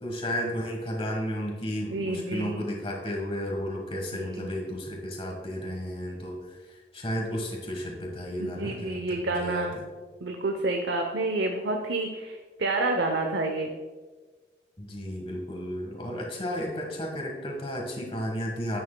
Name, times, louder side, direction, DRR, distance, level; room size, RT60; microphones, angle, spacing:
voice 1, 0.0-9.8 14.8-18.8, equal, 30° left, 0 dB, 1.4 m, -33 dB
voice 2, 1.9-2.6 4.1-4.5 8.4-9.8 10.2-13.7, right 2 dB, 85° right, 3 dB, 0.7 m, -29 dB
9.8 x 8.5 x 2.2 m, 1.4 s
head